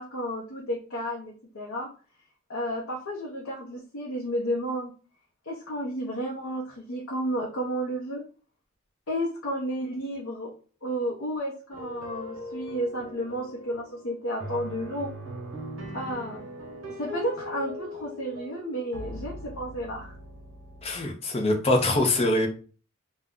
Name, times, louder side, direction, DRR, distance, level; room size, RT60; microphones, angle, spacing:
voice 1, 0.0-1.9 2.5-4.9 5.5-8.2 9.1-10.5 10.8-15.1 15.9-16.4 17.0-20.1, equal, 75° left, -3 dB, 0.7 m, -32 dB
sound 1, 11.7-21.0, left 1 dB, 70° right, 0.9 m, -40 dB
voice 2, 20.8-22.5, left 2 dB, 30° left, 3 dB, 0.6 m, -23 dB
2.5 x 2.2 x 3.5 m, 0.37 s
head